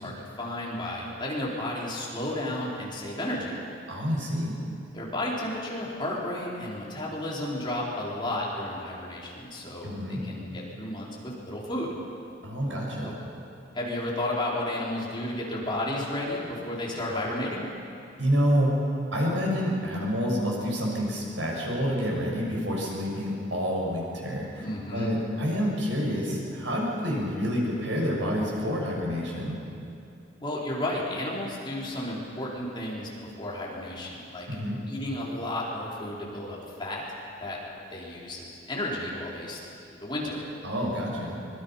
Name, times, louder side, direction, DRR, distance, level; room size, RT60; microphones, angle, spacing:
voice 1, 0.0-3.5 4.9-11.9 13.0-13.1 13.7-17.7 24.6-25.1 30.4-33.1 33.4-34.5 34.9-37.0 37.4-37.6 37.9-40.4, left 1 dB, 25° left, -4 dB, 4.2 m, -32 dB
voice 2, 3.9-4.5 9.8-10.2 12.4-13.1 18.2-18.7 19.1-24.6 24.9-29.6 34.5-34.8 40.6-41.4, equal, 90° right, -2 dB, 6.4 m, -28 dB
24.5 x 22.5 x 5.8 m, 2.6 s
head